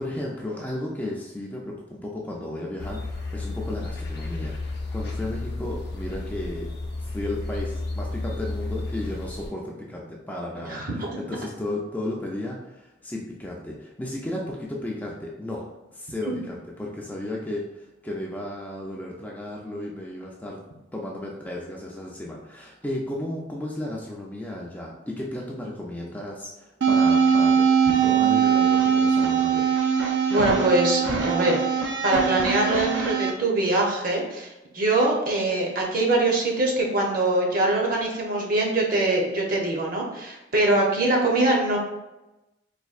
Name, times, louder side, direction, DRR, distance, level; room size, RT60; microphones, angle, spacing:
voice 1, 0.0-6.7 7.0-20.6 20.9-27.7 28.0-29.8, left 1 dB, 10° left, -3 dB, 0.4 m, -34 dB
sound 1, 2.8-9.5, left 2 dB, 55° left, 0.6 m, -32 dB
voice 2, 10.7-11.1 27.9-28.0 30.3-31.6 32.0-34.5 34.7-41.8, right 2 dB, 45° right, -1 dB, 0.8 m, -23 dB
sound 2, 26.8-33.3, right 6 dB, 70° right, 0.5 m, -21 dB
4.1 x 2.6 x 2.4 m, 0.98 s
head